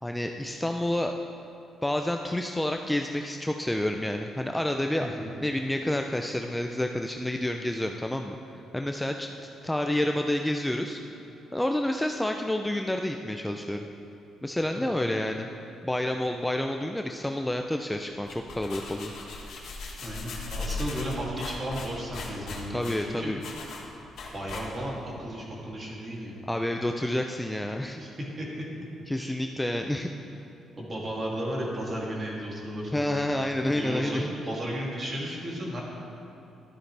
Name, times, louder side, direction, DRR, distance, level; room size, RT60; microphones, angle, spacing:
voice 1, 0.0-1.1 1.8-5.1 5.4-8.4 8.7-9.3 9.6-11.0 11.5-13.9 14.4-15.5 15.8-19.1 22.7-23.4 26.5-28.0 29.1-30.1 32.9-34.3, left 1 dB, 5° left, 4 dB, 0.5 m, -29 dB
voice 2, 5.0-5.3 14.7-15.1 20.0-23.3 24.3-26.3 28.0-28.5 29.1-29.3 30.8-33.3 33.6-35.8, equal, 35° right, -3 dB, 2.6 m, -34 dB
sound 1, 18.1-25.0, left 3 dB, 70° left, 1.6 m, -38 dB
12.5 x 10.0 x 3.4 m, 2.9 s
cardioid pair, 90°, 0 cm